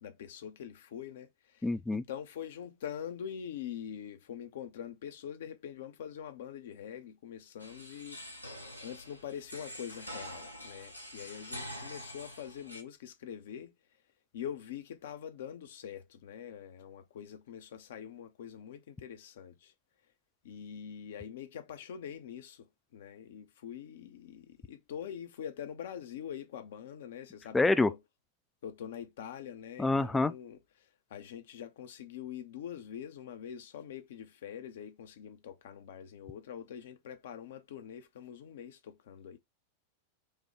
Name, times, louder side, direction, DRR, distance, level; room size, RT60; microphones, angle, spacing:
voice 1, 0.0-8.2 8.8-13.7 14.3-19.7 20.4-22.7 22.9-28.0 28.6-30.6 31.1-39.4, left 9 dB, 60° left, 0.7 m, -44 dB
voice 2, 1.6-2.0 27.5-27.9 29.8-30.3, left 2 dB, 10° left, 0.4 m, -26 dB
sound 1, 7.6-12.8, equal, 90° left, 0.9 m, -45 dB
4.9 x 2.3 x 4.2 m
figure-of-eight pair, 90°, 0 cm